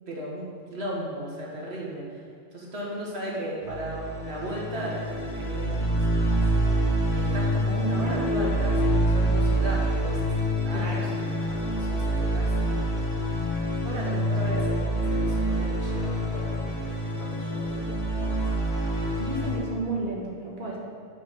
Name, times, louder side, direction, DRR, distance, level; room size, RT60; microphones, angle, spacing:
voice 1, 0.1-0.5 0.7-2.0 2.5-6.6 7.1-10.4 10.6-13.3 13.7-18.4, equal, 85° right, -3 dB, 1.8 m, -36 dB
sound 1, 3.6-19.6, right 1 dB, 90° left, 1.7 m, -26 dB
voice 2, 7.8-8.3 10.7-11.2 14.4-14.8 18.3-18.4 19.2-20.8, right 3 dB, 50° right, -4 dB, 1.5 m, -33 dB
6.1 x 6.0 x 5.8 m, 2.4 s
omnidirectional pair, 1.1 m